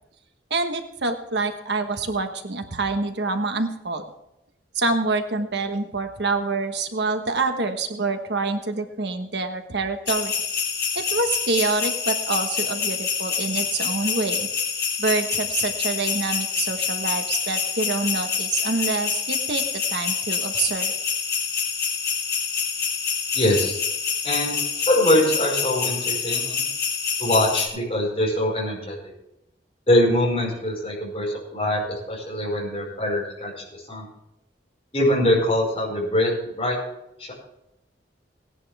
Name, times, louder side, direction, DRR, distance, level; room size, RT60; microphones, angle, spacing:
voice 1, 0.5-4.0 4.7-10.3 10.9-14.5 15.0-20.9, right 3 dB, 70° right, 6 dB, 1.3 m, -26 dB
sound 1, 10.1-27.7, left 6 dB, 60° left, 3.5 m, -26 dB
voice 2, 23.3-23.8 24.2-24.6 24.9-26.6 27.2-29.1 29.9-33.5 33.9-34.1 34.9-36.8 37.2-37.3, left 1 dB, 30° left, -3 dB, 5.5 m, -23 dB
18.0 x 10.5 x 3.5 m, 0.84 s
head